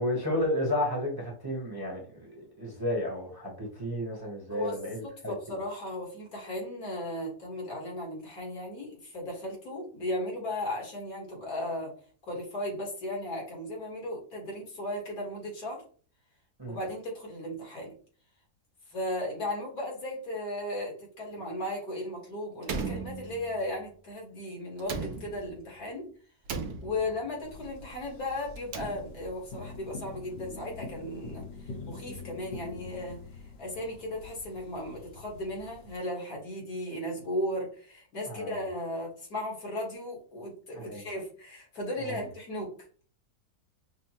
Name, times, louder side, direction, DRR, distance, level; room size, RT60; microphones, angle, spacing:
voice 1, 0.0-2.3 2.6-5.3 16.6-16.8 38.3-38.6 40.7-41.0 42.0-42.2, left 1 dB, 20° right, -2 dB, 0.8 m, -32 dB
voice 2, 5.0-12.0 12.2-15.8 16.7-17.9 18.9-26.1 26.8-33.2 33.6-42.7, left 1 dB, 70° left, -2 dB, 2.1 m, -36 dB
Slam, 22.6-23.8 24.8-25.7 26.5-27.4 28.5-29.4, right 4 dB, 75° right, 1.1 m, -37 dB
sound 1, 27.4-36.0, left 3 dB, 50° left, 0.9 m, -45 dB
6.0 x 2.2 x 2.9 m, 0.43 s
omnidirectional pair, 1.6 m